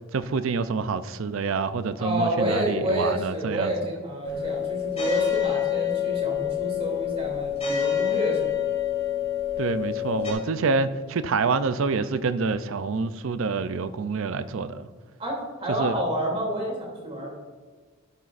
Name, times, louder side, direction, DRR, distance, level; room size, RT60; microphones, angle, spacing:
voice 1, 0.1-3.7 9.6-14.9 15.8-16.0, right 4 dB, 70° right, 12 dB, 0.5 m, -27 dB
voice 2, 2.0-8.6 15.2-17.3, right 1 dB, 25° right, -2 dB, 2.8 m, -29 dB
sound 1, 4.2-10.3, left 9 dB, 30° left, 2.5 m, -27 dB
12.0 x 9.8 x 2.5 m, 1.4 s
head